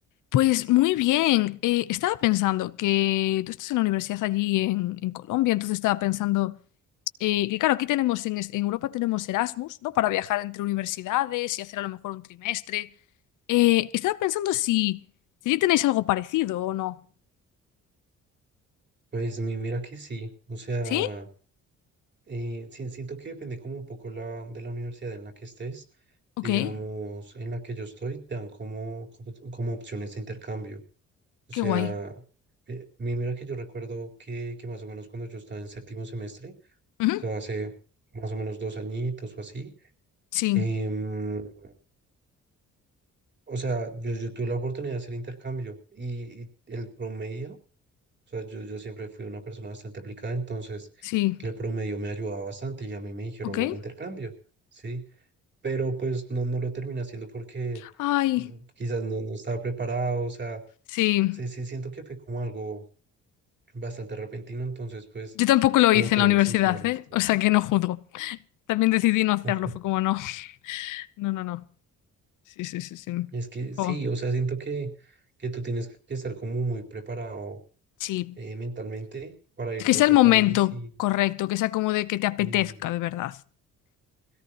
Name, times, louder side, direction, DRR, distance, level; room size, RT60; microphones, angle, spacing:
voice 1, 0.3-6.6 7.2-12.9 13.5-15.0 15.4-17.0 20.9-21.1 26.4-26.7 31.5-31.9 37.0-37.2 40.3-40.7 51.0-51.4 53.4-53.8 58.0-58.5 60.9-61.4 65.4-68.4 68.7-71.6 72.6-73.3 73.8-74.0 78.0-78.4 79.8-83.4, left 17 dB, 90° left, 0.8 m, -24 dB
voice 2, 19.1-21.3 22.3-25.8 26.4-30.8 31.5-32.1 32.7-36.5 37.2-37.7 38.1-39.7 40.5-41.7 43.5-47.6 48.3-54.3 54.7-55.0 55.6-57.8 58.4-60.6 61.3-62.8 63.7-65.3 65.9-66.9 69.4-69.7 73.3-77.6 78.4-80.9 82.4-82.7, right 3 dB, 35° right, 4.2 m, -33 dB
21.0 x 17.0 x 3.0 m
cardioid pair, 90°, 30 cm